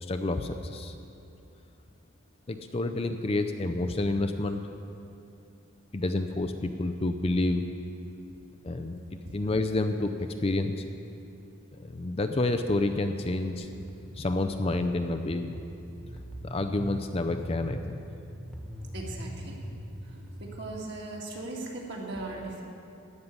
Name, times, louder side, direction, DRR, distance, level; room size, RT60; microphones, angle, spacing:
voice 1, 0.0-1.0 2.5-4.6 5.9-7.6 8.6-10.1 10.4-10.8 11.8-13.7 14.2-15.5 16.4-18.1, left 2 dB, 25° left, 7 dB, 0.4 m, -29 dB
sound 1, 13.5-20.4, equal, ahead, 1.3 m, -42 dB
voice 2, 18.9-19.6 20.0-22.6, right 2 dB, 50° right, -1 dB, 1.9 m, -39 dB
15.0 x 5.5 x 9.5 m, 2.7 s
head